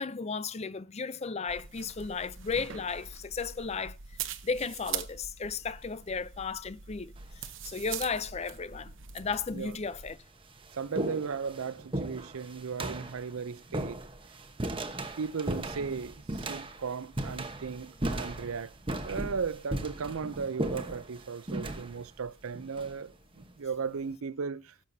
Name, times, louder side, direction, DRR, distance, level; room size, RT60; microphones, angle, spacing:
voice 1, 0.0-4.0 4.4-7.1 7.6-10.2, left 5 dB, 30° left, 0.5 m, -34 dB
sound 1, 1.5-10.2, right 8 dB, 60° right, 0.9 m, -42 dB
sound 2, 7.2-7.6 8.6-8.7 9.5-9.6 10.0-23.5, right 1 dB, 25° right, 1.0 m, -37 dB
voice 2, 10.7-14.0 15.2-18.7 19.0-24.7, right 5 dB, 75° right, 0.5 m, -36 dB
17.0 x 7.6 x 2.7 m
head